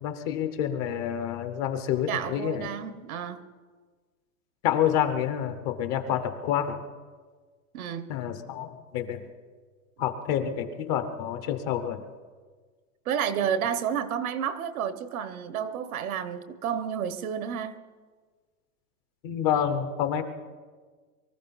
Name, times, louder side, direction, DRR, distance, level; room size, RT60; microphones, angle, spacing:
voice 1, 0.0-2.7 4.6-6.8 8.1-9.2 10.0-12.0 19.2-20.2, left 9 dB, 25° left, 0.8 m, -28 dB
voice 2, 2.1-3.5 7.7-8.1 13.1-17.8, right 8 dB, 70° right, 1.2 m, -30 dB
23.5 x 14.0 x 4.1 m
supercardioid pair, 170°, 45 cm